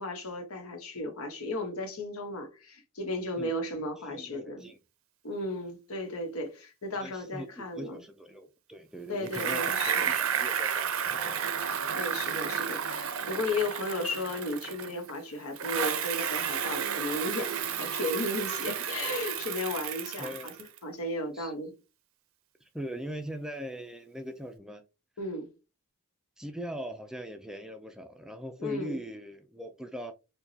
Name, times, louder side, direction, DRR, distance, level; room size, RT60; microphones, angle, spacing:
voice 1, 0.0-4.7 5.2-8.0 9.1-10.1 12.0-20.5 20.8-21.7 25.2-25.5 28.6-29.0, left 2 dB, 85° left, 1.1 m, -35 dB
voice 2, 3.4-4.8 7.0-11.4 20.2-20.6 21.3-21.5 22.6-24.8 26.4-30.1, equal, 5° right, 0.3 m, -41 dB
Bicycle, 9.3-15.1 15.6-20.8, right 8 dB, 70° right, 0.5 m, -32 dB
4.6 x 2.2 x 2.7 m
head